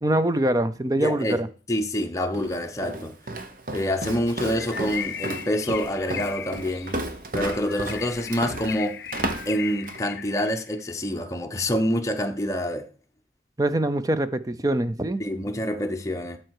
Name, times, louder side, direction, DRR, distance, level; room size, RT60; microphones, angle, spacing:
voice 1, 0.0-1.5 13.6-15.2, right 1 dB, 20° right, 0.5 m, -24 dB
voice 2, 1.0-1.4 1.7-3.1 3.7-7.0 7.3-9.0 9.4-12.9 15.2-16.4, equal, 15° left, 0.9 m, -27 dB
Walk footsteps, 2.3-10.1, right 2 dB, 50° right, 1.0 m, -33 dB
Bird, 4.5-10.8, left 9 dB, 65° left, 0.5 m, -37 dB
12.0 x 4.5 x 4.8 m
head